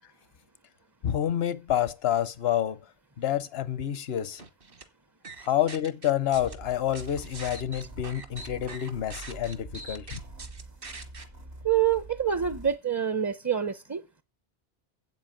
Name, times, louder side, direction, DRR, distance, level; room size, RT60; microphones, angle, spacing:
voice 1, 1.0-2.8 3.2-4.4 5.5-10.2, left 11 dB, 80° left, 1.0 m, -28 dB
sound 1, 4.4-4.8 5.2-6.5 6.9-11.2, right 3 dB, 65° right, 1.6 m, -43 dB
sound 2, 6.3-12.8, right 3 dB, 80° right, 2.2 m, -45 dB
voice 2, 11.6-14.2, right 9 dB, 25° right, 0.5 m, -26 dB
8.0 x 7.6 x 8.8 m
omnidirectional pair, 1.0 m